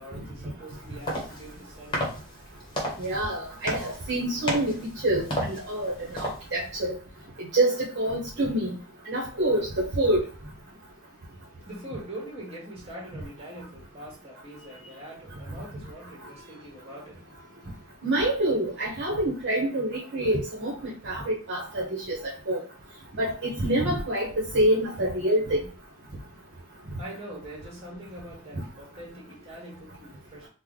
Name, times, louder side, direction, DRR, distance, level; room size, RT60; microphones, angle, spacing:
voice 1, 0.0-2.0 11.6-17.2 27.0-30.5, right 1 dB, 30° right, -2 dB, 1.4 m, -43 dB
sound 1, 0.7-6.8, equal, 25° left, 1.0 m, -34 dB
voice 2, 3.0-6.9 7.4-8.8 9.1-10.2 18.0-22.2 22.5-22.6 23.2-24.3 24.5-25.6, right 1 dB, 55° right, -4 dB, 0.9 m, -26 dB
3.2 x 2.1 x 3.7 m, 0.37 s
head